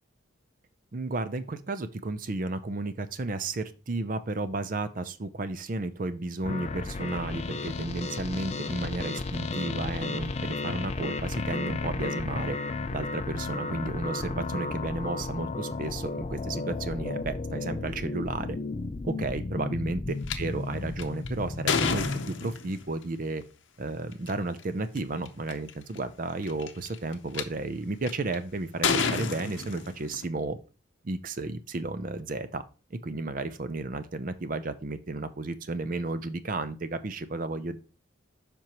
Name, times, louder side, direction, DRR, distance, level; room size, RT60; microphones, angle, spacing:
voice 1, 0.9-12.6 12.9-18.6 19.0-23.4 23.8-30.6 31.0-32.6 32.9-37.8, right 2 dB, 45° right, 12 dB, 0.5 m, -33 dB
sound 1, 6.4-22.2, left 3 dB, 30° left, 0.4 m, -33 dB
sound 2, 20.3-20.4 21.0-22.9 24.1-24.3 25.0-25.1 25.3-25.7 26.4-27.4 28.1-28.4 28.8-30.3, left 5 dB, 70° left, 0.8 m, -29 dB
7.6 x 5.3 x 3.0 m, 0.34 s
head